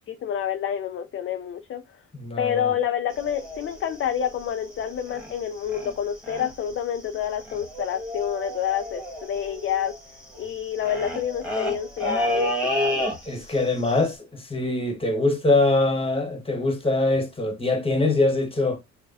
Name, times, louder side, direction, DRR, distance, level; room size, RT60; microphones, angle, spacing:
voice 1, 0.1-1.8 2.4-10.0 10.4-13.1, left 9 dB, 45° left, 0.4 m, -28 dB
voice 2, 2.1-2.7 13.3-18.8, left 2 dB, 20° left, 1.2 m, -23 dB
sound 1, 3.1-5.4 5.7-5.9 6.2-6.7 7.0-7.1 7.2-13.6 13.9-14.1, left 1 dB, 5° right, 1.6 m, -30 dB
6.5 x 2.2 x 2.5 m
cardioid pair, 90°, 30 cm